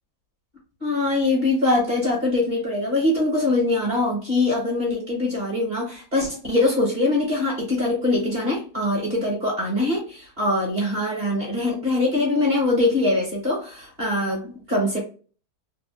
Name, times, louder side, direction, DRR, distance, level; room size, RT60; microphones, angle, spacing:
voice 1, 0.8-15.0, left 2 dB, 30° right, -2 dB, 1.0 m, -23 dB
3.3 x 2.4 x 2.4 m, 0.37 s
omnidirectional pair, 1.9 m